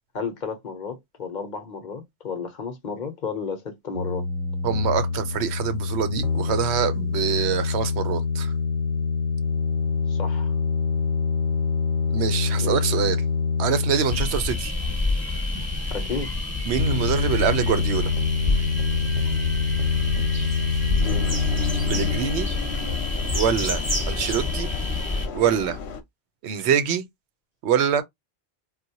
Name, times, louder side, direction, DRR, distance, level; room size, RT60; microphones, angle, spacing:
voice 1, 0.1-4.3 10.1-10.5 12.6-12.8 15.9-16.3 20.9-21.4, left 5 dB, 50° left, 0.8 m, -32 dB
sound 1, 3.9-14.6 16.8-22.2, left 5 dB, 40° right, 0.9 m, -25 dB
voice 2, 4.6-8.5 12.1-13.2 13.6-14.7 16.7-18.1 21.8-22.5 23.3-23.8 24.1-24.7 25.3-25.8 26.4-27.1 27.6-28.0, right 8 dB, 85° right, 0.9 m, -24 dB
sound 2, 14.1-25.3, left 2 dB, 15° right, 1.1 m, -28 dB
Engine, 21.0-26.0, left 4 dB, 85° left, 0.9 m, -32 dB
4.0 x 2.2 x 2.7 m
omnidirectional pair, 1.1 m